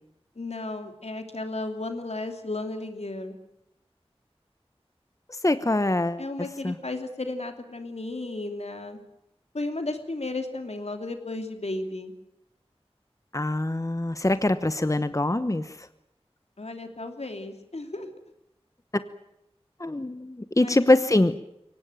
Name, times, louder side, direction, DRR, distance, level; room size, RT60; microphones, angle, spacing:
voice 1, 0.3-3.4 6.2-9.0 9.5-12.1 16.6-18.1 20.6-21.3, left 2 dB, 80° left, 6 dB, 2.9 m, -34 dB
voice 2, 5.3-6.2 6.6-6.7 13.3-15.9 19.8-21.3, left 1 dB, 30° left, 12 dB, 1.0 m, -24 dB
23.5 x 18.0 x 9.1 m, 0.83 s
wide cardioid pair, 40°, 11 cm